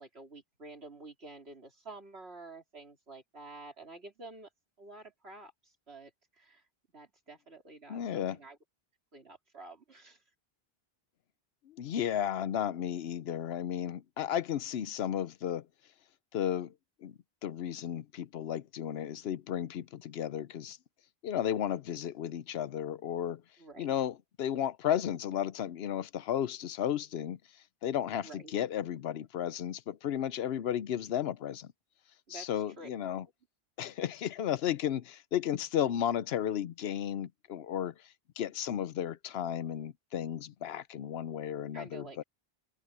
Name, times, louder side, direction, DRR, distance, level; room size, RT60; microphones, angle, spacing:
voice 1, 0.0-4.5 4.8-6.1 6.4-6.7 6.9-8.6 9.1-10.2 23.6-23.9 28.2-28.5 32.3-32.5 32.8-32.9 41.7-42.2, right 3 dB, 85° right, 3.7 m, -49 dB
voice 2, 7.9-8.4 11.7-15.7 16.3-16.7 17.0-20.8 21.2-23.4 23.8-27.4 27.8-31.7 32.3-33.3 33.8-37.9 38.4-42.2, left 10 dB, 80° left, 0.9 m, -34 dB
omnidirectional pair, 1.0 m